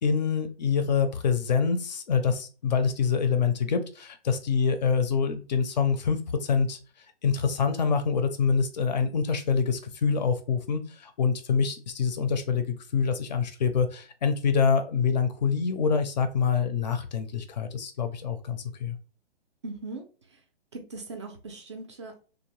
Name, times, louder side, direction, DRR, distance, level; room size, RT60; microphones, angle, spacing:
voice 1, 0.0-6.8 7.2-19.0, left 6 dB, 45° left, 9 dB, 0.4 m, -26 dB
voice 2, 19.6-20.4 20.7-22.2, right 3 dB, 30° right, 3 dB, 0.4 m, -40 dB
2.8 x 2.0 x 2.9 m, 0.35 s
hypercardioid pair, 145°, 31 cm